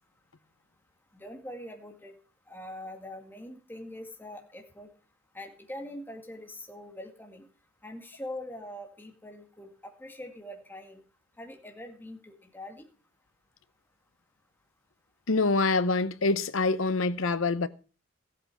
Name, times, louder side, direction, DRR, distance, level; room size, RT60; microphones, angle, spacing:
voice 1, 1.1-2.1 2.5-4.9 5.3-7.5 7.8-11.0 11.4-12.8, left 1 dB, 10° left, 2.0 m, -43 dB
voice 2, 15.3-17.7, left 3 dB, 80° left, 0.8 m, -25 dB
15.0 x 8.6 x 4.8 m
head